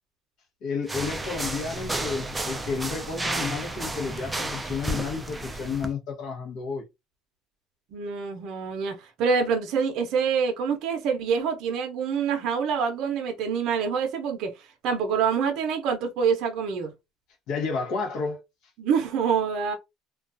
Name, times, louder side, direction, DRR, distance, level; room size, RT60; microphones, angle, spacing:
voice 1, 0.6-6.8 17.5-18.4, left 5 dB, 65° left, 0.8 m, -31 dB
sound 1, 0.9-5.9, right 2 dB, 10° right, 0.3 m, -32 dB
voice 2, 7.9-14.5 14.8-16.9 18.8-19.7, right 6 dB, 60° right, 0.6 m, -26 dB
2.3 x 2.2 x 2.5 m
cardioid pair, 150°, 0 cm